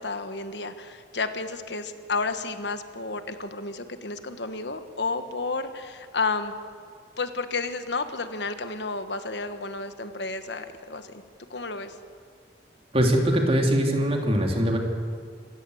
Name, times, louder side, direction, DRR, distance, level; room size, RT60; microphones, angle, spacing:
voice 1, 0.0-6.5 7.2-11.2 11.5-11.9, left 3 dB, 75° left, 9 dB, 1.4 m, -31 dB
voice 2, 12.9-14.8, equal, 30° right, 2 dB, 2.9 m, -22 dB
26.5 x 16.5 x 8.0 m, 2.1 s
head